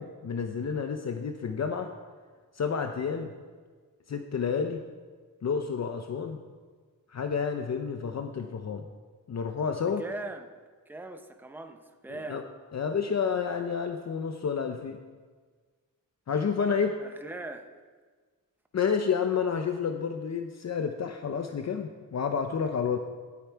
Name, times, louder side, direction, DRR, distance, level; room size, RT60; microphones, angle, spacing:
voice 1, 0.0-1.9 2.5-3.3 4.1-4.8 5.4-6.4 7.1-8.9 9.3-10.0 12.1-12.4 12.7-15.0 16.3-17.0 18.7-23.0, left 6 dB, 50° left, 6 dB, 0.7 m, -30 dB
voice 2, 10.0-10.5 10.9-12.5 17.0-17.7, right 2 dB, 5° right, 6 dB, 0.7 m, -40 dB
18.0 x 8.5 x 4.6 m, 1.5 s
wide cardioid pair, 170°, 34 cm